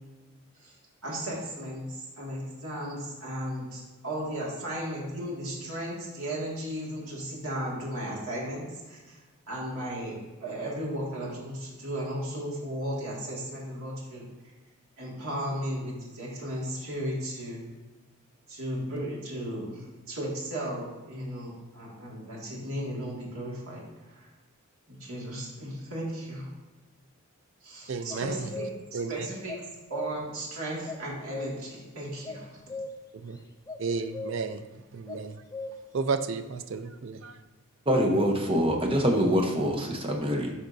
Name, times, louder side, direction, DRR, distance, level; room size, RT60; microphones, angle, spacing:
voice 1, 1.0-9.2 9.5-14.2 15.0-17.6 18.5-23.8 24.1-24.3 24.9-26.5 27.6-29.6 29.9-32.7, right 1 dB, 75° right, -4 dB, 2.0 m, -35 dB
voice 2, 27.9-28.4 28.9-29.3 33.2-33.4 33.8-34.6 34.9-35.4 35.9-37.4, right 4 dB, 60° right, 9 dB, 0.4 m, -32 dB
sound 1, 28.1-29.0 29.5-30.4 30.8-31.8 32.2-33.3 33.7-33.9 34.1-34.6 35.1-36.0, left 2 dB, 15° left, 0.4 m, -39 dB
voice 3, 37.9-40.5, equal, 25° right, 1 dB, 0.8 m, -25 dB
11.0 x 4.3 x 2.6 m, 1.2 s
head